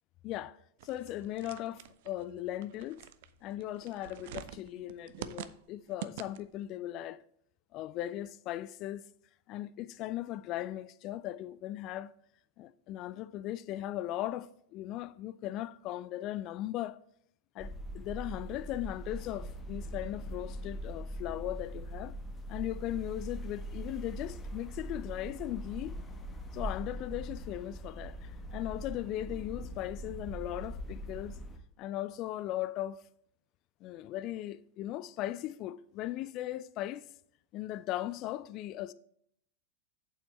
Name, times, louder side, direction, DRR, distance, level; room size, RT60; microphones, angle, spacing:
voice 1, 0.2-0.6 0.8-3.0 3.4-7.2 7.7-9.0 9.5-12.1 12.6-17.0 17.5-22.1 22.5-26.0 26.5-31.4 31.8-33.0 33.8-37.0 37.5-38.9, left 14 dB, 40° left, 0.3 m, -38 dB
sound 1, 0.8-6.6, right 11 dB, 50° right, 0.5 m, -46 dB
sound 2, 17.6-31.6, equal, 20° left, 1.1 m, -42 dB
8.7 x 7.6 x 3.2 m
figure-of-eight pair, 90°, 0 cm